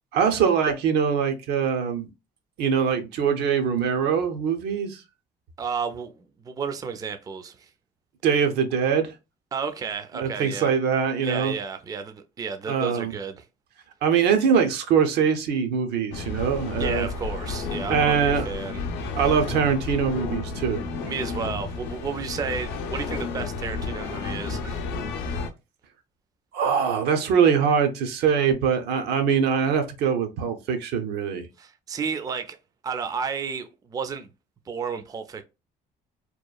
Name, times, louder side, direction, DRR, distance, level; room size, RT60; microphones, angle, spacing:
voice 1, 0.1-2.1 2.6-5.0 8.2-9.1 10.2-11.5 12.7-13.1 14.0-17.1 17.9-18.5 19.2-20.9 26.5-31.5, right 7 dB, 80° right, 0.6 m, -23 dB
voice 2, 5.6-7.7 9.5-10.7 11.2-13.4 16.8-18.8 21.0-24.9 31.6-32.6 32.8-34.3 34.7-35.4, right 6 dB, 20° right, 0.4 m, -32 dB
sound 1, 16.1-25.5, left 4 dB, 90° left, 0.5 m, -31 dB
2.9 x 2.2 x 2.3 m
cardioid pair, 110°, 17 cm